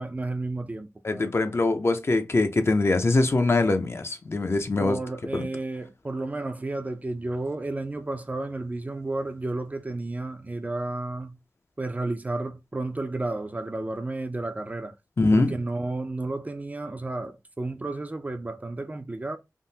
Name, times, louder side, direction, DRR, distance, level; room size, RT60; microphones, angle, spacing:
voice 1, 0.0-1.5 4.8-11.4 11.8-14.9 15.3-19.4, right 2 dB, 25° right, 0.4 m, -32 dB
voice 2, 1.0-5.0 5.3-5.5 15.2-15.5, left 2 dB, 45° left, 0.5 m, -23 dB
3.5 x 2.0 x 2.7 m
wide cardioid pair, 65°, 6 cm